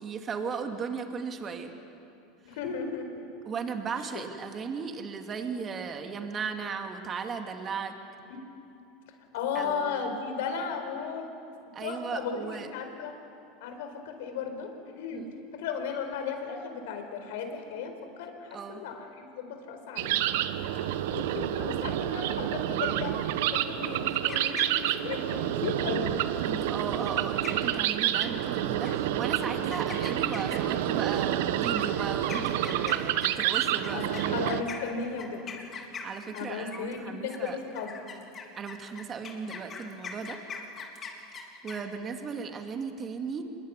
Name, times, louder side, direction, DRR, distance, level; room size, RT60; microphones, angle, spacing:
voice 1, 0.0-1.7 3.5-7.9 9.5-10.0 11.7-12.7 15.1-15.3 18.5-18.8 26.4-34.3 36.0-37.6 38.5-40.4 41.6-43.4, right 5 dB, 30° right, 5 dB, 2.4 m, -36 dB
voice 2, 2.4-3.3 4.1-4.2 8.3-8.4 9.3-11.3 11.8-13.1 13.6-15.3 15.5-20.4 21.1-23.1 23.5-26.2 33.9-35.4 36.3-38.1, left 6 dB, 75° left, 6 dB, 4.5 m, -35 dB
sound 1, 20.0-34.6, right 12 dB, 75° right, 1.1 m, -29 dB
sound 2, 24.1-25.1 27.1-27.2 27.4-27.8 28.2-28.5 28.8-29.0 29.4-30.8 31.7-36.9 37.3-41.8, left 5 dB, 30° left, 3.6 m, -41 dB
25.5 x 21.5 x 9.9 m, 2.7 s
supercardioid pair, 120°, 0 cm